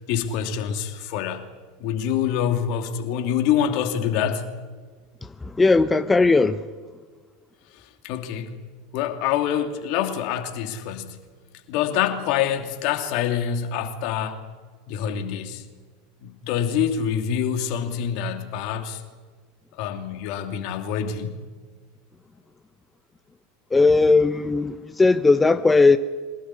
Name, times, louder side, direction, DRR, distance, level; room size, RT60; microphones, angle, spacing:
voice 1, 0.0-1.5 1.8-4.5 7.7-8.6 8.9-11.2 11.7-14.4 14.9-15.7 16.2-19.0 19.8-21.4, left 9 dB, 55° left, 2.8 m, -26 dB
voice 2, 5.2-6.7 23.7-26.0, left 3 dB, 15° left, 0.9 m, -18 dB
24.5 x 18.5 x 9.7 m
figure-of-eight pair, 80°, 0 cm